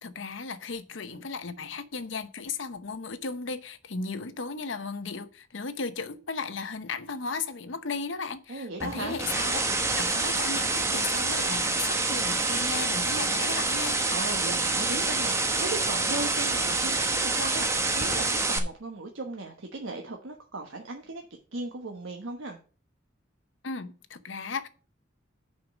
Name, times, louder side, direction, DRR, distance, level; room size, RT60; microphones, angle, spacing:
voice 1, 0.0-9.6 10.0-14.0 23.6-24.7, left 4 dB, 70° left, 0.9 m, -35 dB
voice 2, 8.5-9.2 14.1-21.2 21.5-22.6, right 2 dB, 80° right, 1.1 m, -37 dB
sound 1, 8.8-18.6, right 3 dB, 15° right, 0.9 m, -27 dB
6.5 x 5.3 x 7.1 m
head